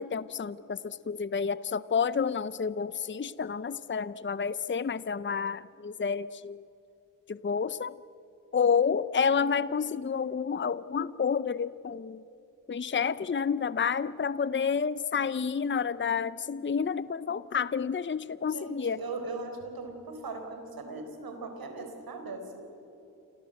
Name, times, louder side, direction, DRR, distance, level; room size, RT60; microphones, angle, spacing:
voice 1, 0.0-6.7 7.3-8.0 8.5-12.2 12.7-19.0, left 6 dB, 35° left, 17 dB, 0.7 m, -29 dB
voice 2, 18.5-22.7, right 3 dB, 80° right, 5 dB, 4.5 m, -39 dB
29.0 x 23.5 x 7.9 m, 2.9 s
supercardioid pair, 40°, 35 cm